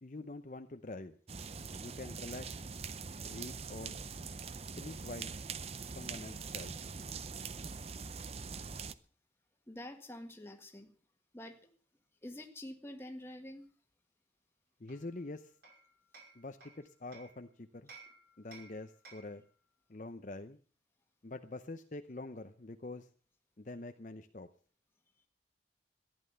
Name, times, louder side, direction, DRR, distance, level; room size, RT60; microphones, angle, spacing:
voice 1, 0.0-1.2 1.8-2.6 3.2-4.0 4.8-5.3 6.0-6.8 14.8-15.5 16.3-17.9 18.4-19.4 19.9-20.6 21.2-23.1 23.6-24.5, left 2 dB, 45° left, 7 dB, 0.7 m, -45 dB
sound 1, 1.3-8.9, right 5 dB, 35° right, 0.6 m, -43 dB
voice 2, 9.7-10.9 11.3-11.7 12.2-13.7, left 1 dB, 15° left, 4 dB, 1.7 m, -47 dB
Hammer, 14.9-17.4 17.9-19.4, right 4 dB, 55° right, 5.3 m, -57 dB
14.5 x 10.5 x 6.8 m, 0.42 s
head